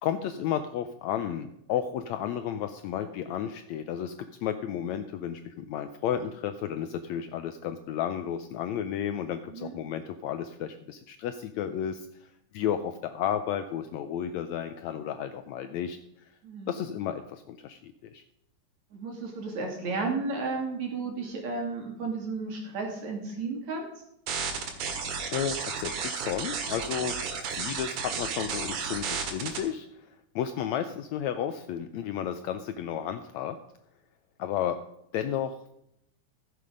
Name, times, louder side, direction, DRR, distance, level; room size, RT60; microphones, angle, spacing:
voice 1, 0.0-4.1 4.4-16.3 16.7-18.2 25.3-27.2 27.5-30.1 30.3-33.6 34.4-34.8 35.1-35.7, left 9 dB, 80° left, 9 dB, 1.7 m, -32 dB
voice 2, 16.4-16.7 18.9-23.8, right 3 dB, 60° right, 1 dB, 3.7 m, -33 dB
sound 1, 24.3-29.6, right 5 dB, 80° right, 3.1 m, -33 dB
14.5 x 7.7 x 5.2 m, 0.79 s
omnidirectional pair, 3.7 m